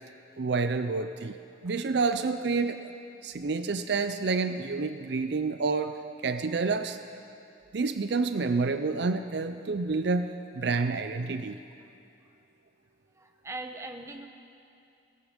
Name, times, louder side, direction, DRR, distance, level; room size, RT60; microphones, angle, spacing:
voice 1, 0.4-1.3 1.6-2.9 3.2-5.9 6.2-7.0 7.7-11.6, right 4 dB, 55° right, 9 dB, 0.5 m, -28 dB
voice 2, 13.2-14.3, right 2 dB, 15° right, 5 dB, 0.8 m, -40 dB
17.0 x 15.5 x 5.1 m, 2.6 s
head